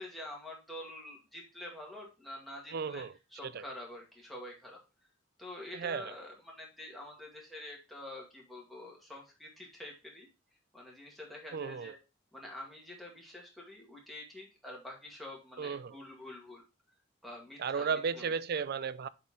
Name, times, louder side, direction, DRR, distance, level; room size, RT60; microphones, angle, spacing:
voice 1, 0.0-3.0 3.3-4.8 5.4-10.3 10.7-12.0 12.3-16.6 17.2-17.9 18.1-18.3, left 1 dB, ahead, 2.0 m, -47 dB
voice 2, 2.7-3.1 3.4-3.7 5.7-6.1 11.5-11.9 15.6-16.0 17.6-19.1, right 6 dB, 55° right, 0.4 m, -34 dB
7.7 x 4.3 x 3.6 m
head